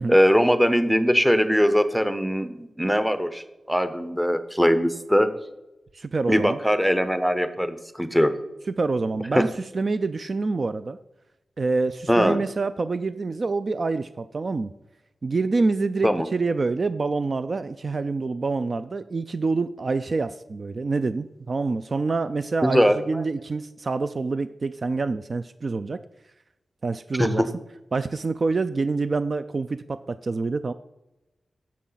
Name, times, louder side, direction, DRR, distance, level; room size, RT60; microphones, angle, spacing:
voice 1, 0.1-5.3 6.3-8.3 9.3-9.4 12.1-12.4 16.0-16.3 22.6-23.0 27.2-27.5, equal, ahead, 10 dB, 0.7 m, -21 dB
voice 2, 5.9-6.6 8.8-11.0 11.6-14.7 15.2-26.0 26.8-27.4 27.9-30.7, right 3 dB, 45° right, 12 dB, 0.3 m, -26 dB
10.0 x 7.4 x 3.9 m, 0.95 s
wide cardioid pair, 120°, 0 cm